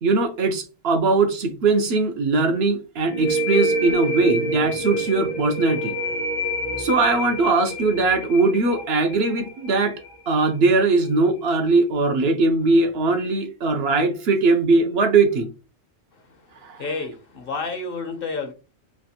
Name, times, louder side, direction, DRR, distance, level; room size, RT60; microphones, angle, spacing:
voice 1, 0.0-5.9 6.8-10.0 10.3-15.5 16.6-16.9, right 3 dB, 65° right, 0.8 m, -20 dB
sound 1, 3.1-10.5, equal, 20° left, 0.5 m, -27 dB
voice 2, 16.8-18.5, left 4 dB, 55° left, 0.9 m, -30 dB
3.3 x 2.4 x 2.7 m
omnidirectional pair, 1.2 m